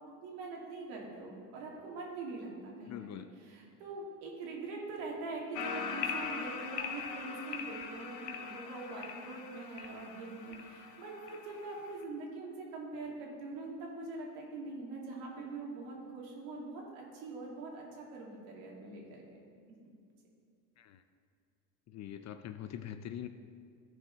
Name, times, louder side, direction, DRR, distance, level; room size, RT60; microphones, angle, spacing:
voice 1, 0.2-19.4 19.8-19.9, right 3 dB, 70° right, -2 dB, 2.4 m, -43 dB
voice 2, 2.9-3.3 20.8-21.0 21.9-23.3, left 10 dB, 35° left, 10 dB, 0.5 m, -43 dB
sound 1, 5.5-12.0, left 6 dB, 80° left, 1.0 m, -41 dB
14.0 x 4.8 x 4.6 m, 2.2 s
hypercardioid pair, 75°, 48 cm